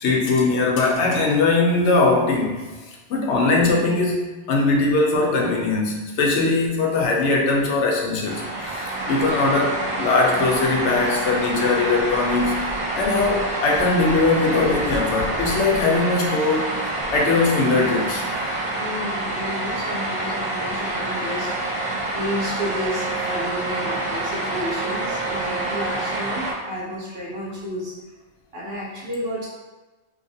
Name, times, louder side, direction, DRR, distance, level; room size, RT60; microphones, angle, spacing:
voice 1, 0.0-2.7 3.1-16.8 17.1-18.2, left 3 dB, 90° left, -1 dB, 0.9 m, -20 dB
sound 1, 8.2-26.5, right 2 dB, 45° right, 0.4 m, -27 dB
voice 2, 18.8-27.9 28.5-29.5, equal, 65° right, -7 dB, 1.1 m, -31 dB
2.7 x 2.4 x 2.6 m, 1.2 s
omnidirectional pair, 1.1 m